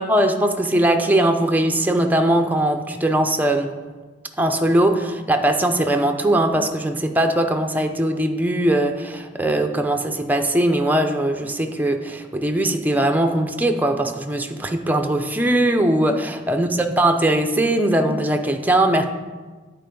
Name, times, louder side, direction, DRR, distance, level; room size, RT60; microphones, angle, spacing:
voice 1, 0.0-3.7 4.4-19.1, right 1 dB, 10° right, 5 dB, 0.6 m, -20 dB
10.0 x 4.6 x 5.2 m, 1.3 s
head